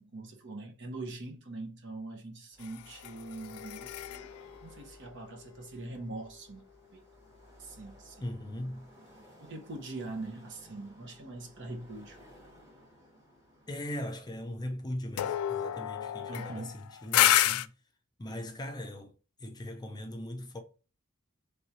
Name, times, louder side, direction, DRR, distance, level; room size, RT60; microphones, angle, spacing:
voice 1, 0.0-4.3 4.6-6.6 6.9-7.0 7.6-8.3 9.4-12.2 16.3-16.8, right 2 dB, 55° right, 0.9 m, -42 dB
sound 1, 2.5-13.7, equal, 15° right, 1.1 m, -57 dB
sound 2, 2.6-6.1 15.2-17.7, left 13 dB, 90° left, 0.3 m, -30 dB
voice 2, 8.2-8.9 13.7-17.7 18.2-19.1 19.4-20.6, left 1 dB, 20° left, 0.6 m, -39 dB
3.4 x 3.2 x 4.1 m
head